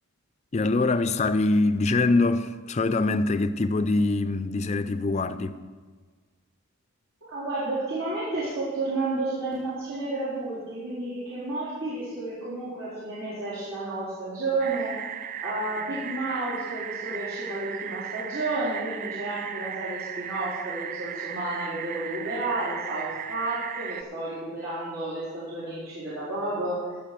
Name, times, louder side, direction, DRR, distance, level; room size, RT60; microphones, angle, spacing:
voice 1, 0.5-5.6, left 2 dB, 30° left, 0.4 m, -24 dB
voice 2, 7.3-14.9 15.4-26.8, right 2 dB, 70° right, 4.2 m, -31 dB
sound 1, 14.6-24.0, right 9 dB, 40° right, 0.4 m, -36 dB
15.5 x 5.5 x 6.7 m
head